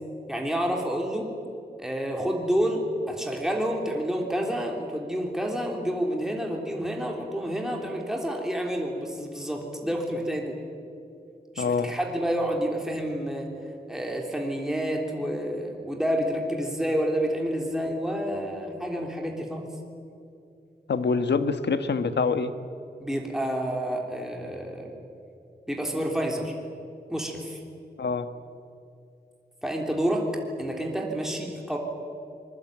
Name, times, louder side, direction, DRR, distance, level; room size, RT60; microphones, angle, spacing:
voice 1, 0.3-1.3 1.8-10.6 11.5-13.5 13.9-19.7 23.0-24.9 25.7-26.5 27.1-27.6 29.6-30.3 30.6-31.8, equal, 5° right, 0 dB, 3.4 m, -29 dB
voice 2, 11.6-12.0 20.9-22.5 28.0-28.3, left 4 dB, 85° left, 10 dB, 1.4 m, -25 dB
25.5 x 21.5 x 9.1 m, 2.6 s
wide cardioid pair, 130°, 17 cm